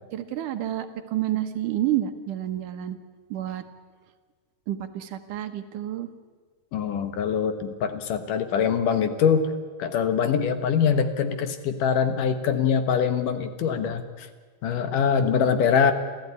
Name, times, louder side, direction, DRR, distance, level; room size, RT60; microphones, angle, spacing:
voice 1, 0.1-3.0 3.3-3.6 4.7-6.1, right 12 dB, 70° right, 8 dB, 2.5 m, -29 dB
voice 2, 6.7-9.5 9.8-14.3 14.6-15.9, left 7 dB, 70° left, 9 dB, 2.8 m, -23 dB
27.0 x 14.5 x 9.6 m, 1.5 s
omnidirectional pair, 4.1 m